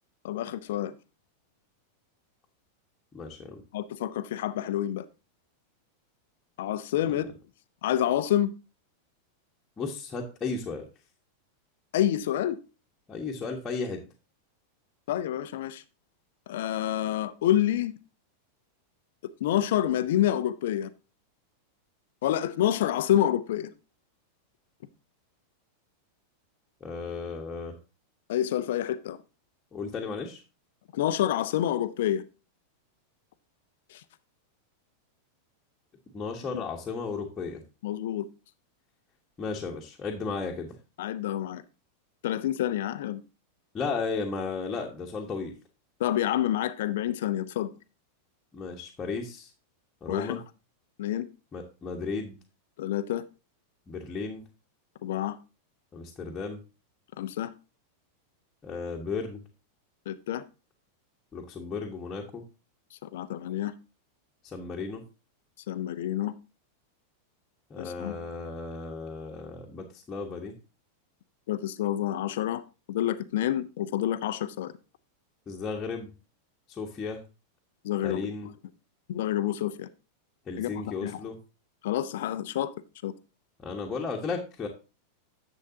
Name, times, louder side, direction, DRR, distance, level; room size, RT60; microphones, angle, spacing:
voice 1, 0.2-0.9 3.7-5.0 6.6-7.4 7.8-8.5 11.9-12.6 15.1-15.8 16.5-17.9 19.4-20.9 22.2-23.7 28.3-29.2 30.9-32.2 33.9-34.0 37.8-38.2 41.0-41.6 42.2-43.2 46.0-47.7 50.1-50.4 51.0-51.2 52.8-53.2 55.0-55.4 57.2-57.5 60.1-60.4 63.0-63.7 65.7-66.3 67.8-68.2 71.5-72.6 72.9-74.7 77.8-78.3 79.1-79.9 80.6-81.2 81.8-82.7 83.0-83.1, left 12 dB, 55° left, 0.6 m, -28 dB
voice 2, 3.1-3.6 7.0-7.2 9.8-10.9 13.1-14.0 26.8-27.8 29.7-30.4 36.1-37.6 39.4-40.7 43.7-45.5 48.5-49.5 50.0-50.4 51.5-52.4 53.9-54.4 55.9-56.6 58.6-59.4 61.3-62.4 64.4-65.0 67.7-70.5 75.5-76.1 76.7-77.2 78.0-78.5 80.5-81.4 83.6-84.7, left 4 dB, 20° left, 1.5 m, -34 dB
10.5 x 7.4 x 2.8 m
figure-of-eight pair, 90°, 0 cm